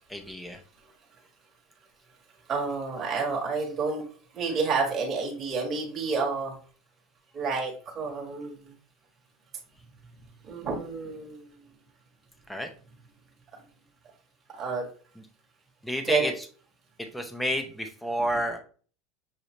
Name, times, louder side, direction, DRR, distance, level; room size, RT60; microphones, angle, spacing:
voice 1, 0.1-0.6 12.5-12.7 15.2-15.3 15.8-16.5 17.0-18.6, equal, 5° left, 6 dB, 0.6 m, -30 dB
voice 2, 2.5-4.0 4.3-6.6 7.3-8.7 10.4-11.5 14.5-14.8 16.0-16.3, right 4 dB, 25° right, 0 dB, 1.2 m, -29 dB
6.5 x 2.7 x 3.0 m, 0.41 s
supercardioid pair, 155°, 0 cm